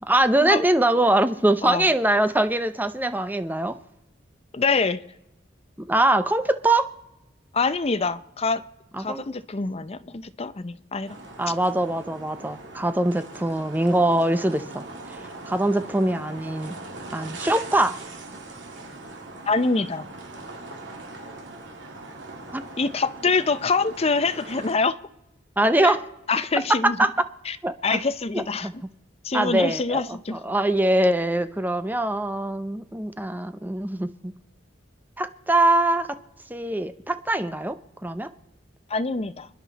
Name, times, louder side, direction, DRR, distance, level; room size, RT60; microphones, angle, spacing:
voice 1, 0.0-3.8 5.8-6.9 8.9-9.2 11.4-16.8 17.1-18.0 22.5-22.6 25.6-26.0 26.5-27.3 27.6-28.0 28.3-28.7 29.3-34.3 35.2-36.2 36.5-38.3, right 1 dB, 10° right, 11 dB, 0.7 m, -23 dB
voice 2, 4.5-5.0 7.5-8.6 9.0-11.2 19.5-20.1 22.8-25.0 25.8-25.9 26.3-27.0 27.5-27.6 27.8-28.7 29.2-30.4 38.9-39.5, left 4 dB, 35° left, 13 dB, 0.7 m, -25 dB
sound 1, 11.1-24.7, right 2 dB, 75° right, 2.5 m, -40 dB
29.5 x 10.5 x 4.1 m, 0.92 s
head